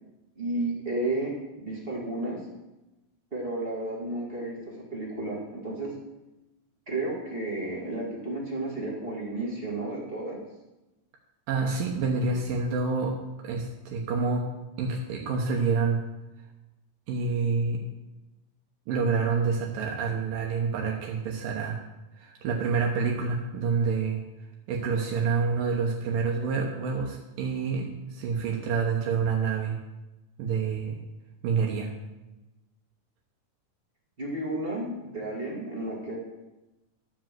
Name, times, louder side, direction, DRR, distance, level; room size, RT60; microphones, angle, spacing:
voice 1, 0.4-1.3 1.6-2.4 3.3-4.6 4.9-5.9 6.9-10.4 34.2-36.2, right 2 dB, 20° right, -4 dB, 1.8 m, -32 dB
voice 2, 11.5-13.1 13.4-14.5 14.8-16.0 17.1-17.8 18.9-21.8 22.2-24.2 24.7-29.7 30.4-31.0 31.4-31.9, right 5 dB, 80° right, -1 dB, 2.8 m, -27 dB
12.5 x 5.0 x 7.5 m, 1.0 s
omnidirectional pair, 3.9 m